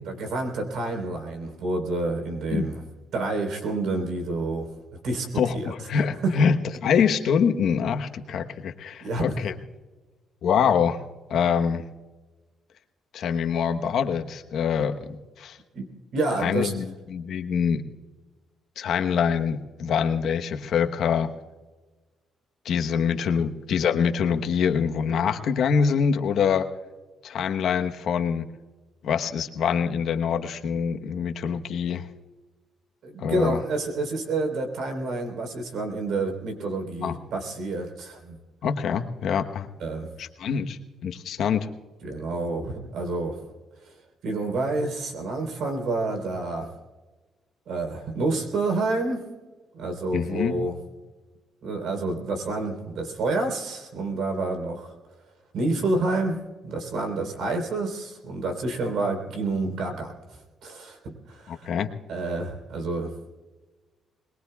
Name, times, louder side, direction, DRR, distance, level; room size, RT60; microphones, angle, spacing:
voice 1, 0.1-2.8 3.1-4.7 5.0-5.7 6.2-6.3 9.0-9.4 15.7-16.7 33.0-38.4 39.8-40.1 42.0-43.4 44.2-46.7 47.7-49.3 49.7-50.8 51.6-54.9 55.5-56.4 56.6-60.1 60.6-61.7 62.1-63.1, right 2 dB, 75° right, 4 dB, 3.7 m, -28 dB
voice 2, 5.4-6.6 6.8-9.5 10.4-11.0 11.3-11.9 13.1-15.6 16.4-17.8 18.8-21.3 22.6-26.7 27.2-28.5 29.0-32.1 33.2-33.6 37.0-37.2 38.6-39.7 40.2-41.7 50.1-50.6 61.5-61.9, left 7 dB, 70° left, 7 dB, 1.0 m, -25 dB
22.5 x 21.0 x 2.3 m, 1.3 s
cardioid pair, 90°, 0 cm